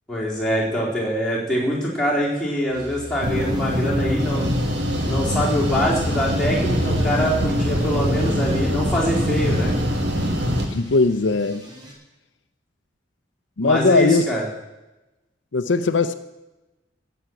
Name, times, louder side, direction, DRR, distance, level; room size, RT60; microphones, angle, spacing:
voice 1, 0.1-4.5 5.1-9.7 13.6-14.5, equal, 5° left, -6 dB, 3.8 m, -24 dB
sound 1, 2.7-11.9, left 1 dB, 25° right, 2.7 m, -40 dB
sound 2, 3.2-10.7, equal, 60° right, 2.0 m, -23 dB
voice 2, 10.7-11.7 13.6-14.2 15.5-16.1, left 3 dB, 75° left, 10 dB, 0.6 m, -19 dB
14.5 x 7.2 x 9.1 m, 1.0 s
head